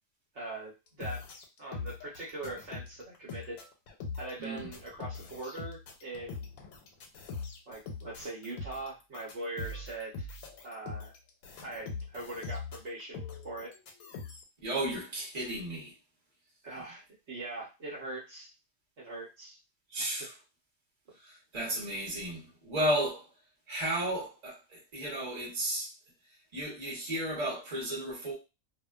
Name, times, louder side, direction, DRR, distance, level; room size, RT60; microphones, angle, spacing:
voice 1, 0.3-1.2 1.6-3.6 4.2-6.5 7.7-10.3 10.6-11.1 11.6-13.7 16.6-18.5 19.0-19.6 20.0-20.1, right 2 dB, 55° right, 1.1 m, -41 dB
sound 1, 0.9-14.4, left 4 dB, 85° left, 1.1 m, -42 dB
voice 2, 14.6-15.9 19.9-20.3 21.2-23.3 23.7-25.9 26.5-28.3, right 1 dB, 30° right, 0.9 m, -33 dB
2.6 x 2.2 x 2.3 m
omnidirectional pair, 1.5 m